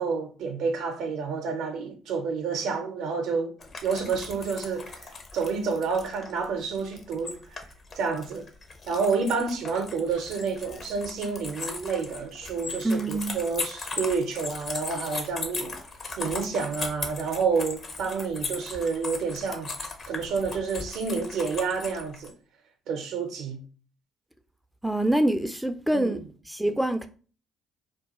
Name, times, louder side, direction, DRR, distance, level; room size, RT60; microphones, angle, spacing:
voice 1, 0.0-3.5 3.8-7.4 7.9-8.4 8.9-15.8 16.2-19.7 20.1-22.3 22.9-23.6 25.9-26.2, right 5 dB, 65° right, 0.5 m, -29 dB
sound 1, 3.6-22.3, left 3 dB, 45° left, 0.6 m, -38 dB
voice 2, 12.8-13.4 24.8-26.2 26.5-27.1, right 1 dB, 5° right, 0.3 m, -25 dB
2.3 x 2.3 x 2.8 m
hypercardioid pair, 55°, 0 cm